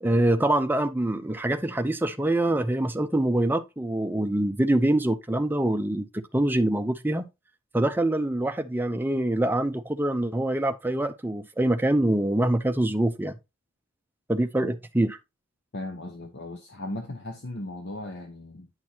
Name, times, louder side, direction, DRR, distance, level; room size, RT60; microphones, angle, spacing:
voice 1, 0.0-7.3 7.7-13.4 14.3-15.2, right 1 dB, 10° right, 0.6 m, -25 dB
voice 2, 15.7-18.7, left 1 dB, 55° left, 1.1 m, -37 dB
9.6 x 6.1 x 2.9 m
head